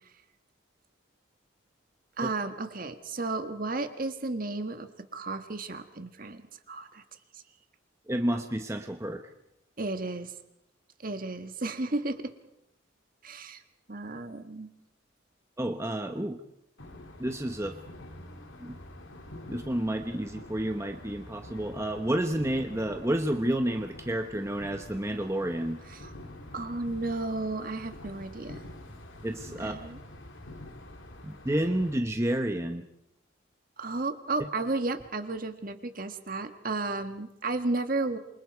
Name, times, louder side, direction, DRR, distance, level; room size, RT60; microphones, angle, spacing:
voice 1, 2.2-6.4 6.7-7.0 9.8-10.3 11.0-12.3 13.2-13.6 13.9-14.7 25.9-26.1 26.5-28.6 29.6-30.0 33.8-38.2, right 2 dB, 45° right, 8 dB, 1.6 m, -33 dB
voice 2, 8.1-9.3 15.6-16.4 17.2-17.8 18.6-18.7 19.5-25.8 29.2-29.8 31.2-32.8, right 1 dB, 15° right, 5 dB, 0.9 m, -30 dB
sound 1, 16.8-31.9, left 1 dB, 70° left, 2.9 m, -47 dB
27.5 x 25.0 x 4.7 m, 0.83 s
head